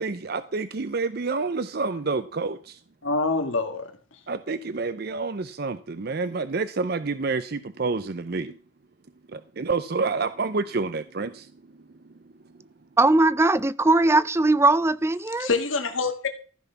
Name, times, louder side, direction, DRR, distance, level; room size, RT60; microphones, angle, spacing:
voice 1, 0.0-2.8 4.3-8.5 9.3-11.5, right 4 dB, 50° right, 0.6 m, -28 dB
voice 2, 3.0-3.9 15.4-16.3, left 3 dB, 85° left, 2.0 m, -25 dB
voice 3, 13.0-15.5, right 2 dB, 15° right, 0.4 m, -20 dB
14.5 x 6.1 x 5.7 m
head